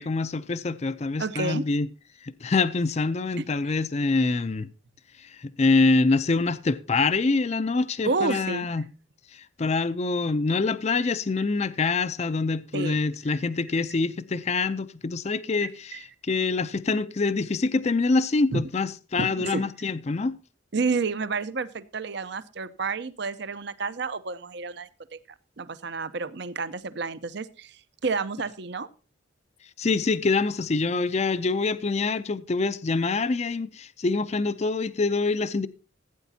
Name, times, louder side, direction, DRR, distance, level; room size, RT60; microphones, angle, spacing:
voice 1, 0.0-1.9 2.2-4.7 5.2-8.9 9.3-20.4 29.8-35.7, left 3 dB, 35° left, 0.5 m, -25 dB
voice 2, 1.2-1.6 3.4-3.5 8.0-8.7 12.7-13.0 15.6-16.0 18.5-18.6 19.2-19.6 20.7-24.9 25.6-28.9, right 4 dB, 60° right, 0.7 m, -30 dB
16.0 x 9.2 x 2.7 m
head